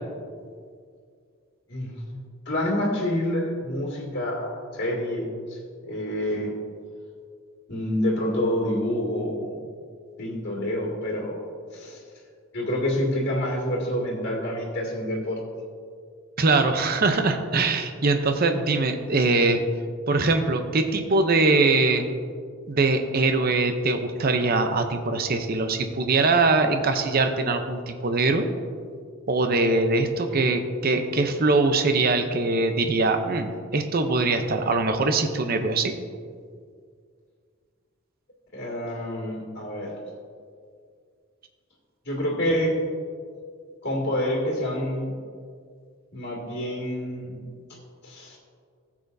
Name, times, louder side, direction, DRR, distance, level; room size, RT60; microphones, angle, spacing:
voice 1, 1.7-6.5 7.7-9.5 10.2-11.4 11.7-12.0 12.5-15.4 38.5-39.9 42.0-42.7 43.8-45.2 46.1-47.5 48.0-48.4, left 1 dB, 55° left, -4 dB, 2.2 m, -27 dB
voice 2, 16.4-19.6 20.1-22.0 22.7-28.5 29.3-35.9, right 3 dB, 45° right, 7 dB, 0.6 m, -22 dB
15.0 x 7.4 x 2.7 m, 2.1 s
head